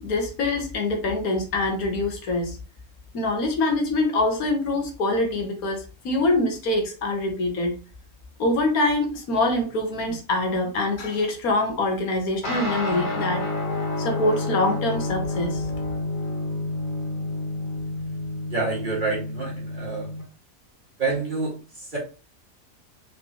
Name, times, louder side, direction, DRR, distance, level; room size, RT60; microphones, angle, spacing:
voice 1, 0.0-2.6 3.1-7.7 8.4-13.4 14.0-15.6, left 2 dB, 70° left, 3 dB, 1.5 m, -24 dB
sound 1, 12.4-20.2, left 2 dB, 35° left, 1.6 m, -29 dB
voice 2, 18.4-20.1 21.0-22.0, right 3 dB, 35° right, -4 dB, 1.9 m, -28 dB
4.3 x 4.0 x 2.8 m, 0.33 s
omnidirectional pair, 1.6 m